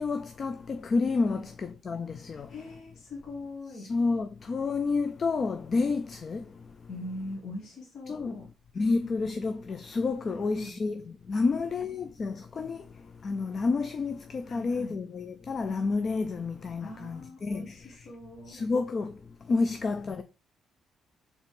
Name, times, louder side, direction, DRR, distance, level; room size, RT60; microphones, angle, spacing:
voice 1, 0.0-2.5 3.7-6.4 8.1-8.4 8.8-12.8 13.2-17.7 18.5-19.1 19.5-20.2, left 4 dB, 45° left, 0.3 m, -30 dB
voice 2, 2.3-3.9 6.9-8.4 8.8-9.4 10.2-10.7 11.3-12.0 14.4-15.0 16.8-18.6, left 1 dB, 60° left, 1.2 m, -43 dB
4.0 x 3.0 x 3.5 m
cardioid pair, 90°, 0 cm